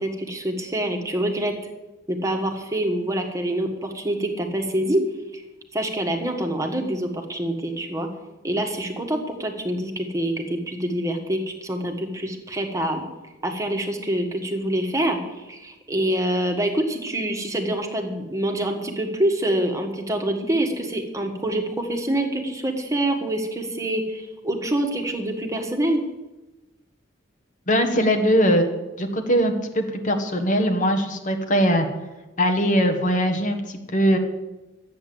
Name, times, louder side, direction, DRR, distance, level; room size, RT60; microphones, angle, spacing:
voice 1, 0.0-1.5 2.1-5.0 5.3-5.4 5.7-8.1 8.4-13.0 13.4-26.0, right 1 dB, 15° right, 3 dB, 1.5 m, -26 dB
voice 2, 27.7-28.7 29.0-31.9 32.4-34.2, equal, 45° left, 6 dB, 1.4 m, -21 dB
12.0 x 8.7 x 7.8 m, 1.1 s
head